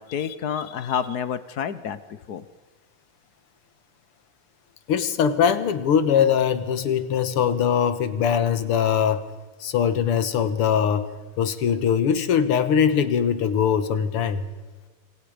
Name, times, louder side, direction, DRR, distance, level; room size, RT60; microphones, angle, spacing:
voice 1, 0.0-2.4, left 8 dB, 55° left, 14 dB, 1.2 m, -29 dB
voice 2, 4.9-9.3 9.6-11.1 11.4-14.5, left 8 dB, 90° left, 11 dB, 2.2 m, -21 dB
27.5 x 24.0 x 5.1 m, 1.3 s
omnidirectional pair, 2.4 m